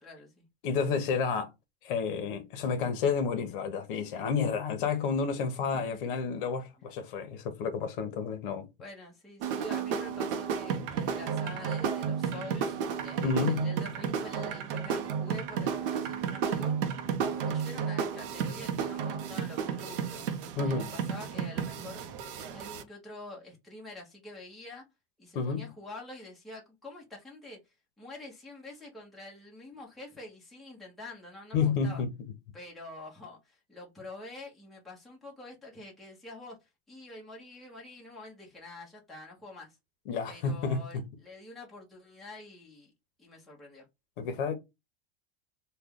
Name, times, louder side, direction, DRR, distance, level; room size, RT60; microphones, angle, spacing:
voice 1, 0.0-0.4 5.7-6.2 6.8-6.9 8.8-12.8 13.0-16.8 17.3-20.3 20.6-22.0 22.4-24.8 25.2-32.0 32.5-39.8 40.3-42.9 43.2-43.8, left 2 dB, ahead, 0.8 m, -47 dB
voice 2, 0.6-1.5 1.8-8.7 13.2-13.7 20.6-20.9 25.3-25.7 31.5-32.1 40.1-41.0 44.2-44.6, left 5 dB, 60° left, 0.9 m, -30 dB
sound 1, 9.4-22.8, right 7 dB, 65° right, 0.7 m, -32 dB
3.3 x 2.2 x 3.6 m
supercardioid pair, 165°, 30 cm